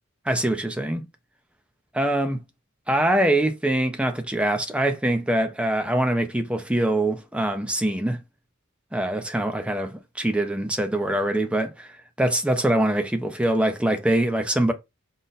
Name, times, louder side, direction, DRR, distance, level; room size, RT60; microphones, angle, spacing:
voice 1, 0.3-1.0 1.9-2.4 2.9-8.2 8.9-14.7, right 1 dB, 5° right, 0.5 m, -23 dB
3.9 x 2.1 x 3.9 m
head